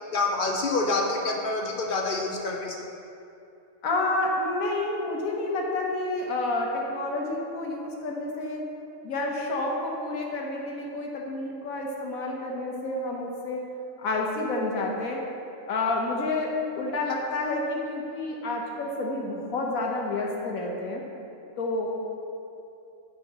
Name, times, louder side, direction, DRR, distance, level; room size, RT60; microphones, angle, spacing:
voice 1, 0.1-2.9, left 3 dB, 65° left, 1 dB, 0.5 m, -27 dB
voice 2, 3.8-8.6 9.0-13.7 14.0-15.2 15.7-21.0 21.6-21.9, left 2 dB, 90° left, 0 dB, 1.4 m, -29 dB
12.5 x 4.5 x 2.9 m, 2.7 s
omnidirectional pair, 1.4 m